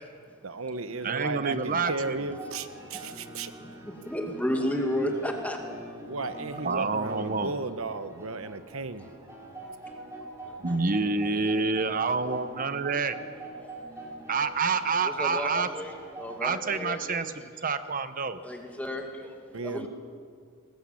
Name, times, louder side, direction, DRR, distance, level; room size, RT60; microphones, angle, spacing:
voice 1, 0.4-3.5 6.0-9.1 19.5-19.9, right 3 dB, 70° right, 10 dB, 1.2 m, -34 dB
voice 2, 1.0-1.9 6.6-7.5 10.6-13.2 14.3-15.7 16.4-18.4, right 4 dB, 40° right, 11 dB, 0.9 m, -28 dB
sound 1, 1.7-16.4, right 2 dB, 15° right, 4.5 m, -44 dB
voice 3, 2.9-3.2 3.6-5.6 10.4-10.6 11.0-11.1 13.6-13.7 15.0-17.3 18.4-19.4 19.6-19.9, equal, 5° left, 2 dB, 2.2 m, -33 dB
20.5 x 20.0 x 8.5 m, 2.1 s
head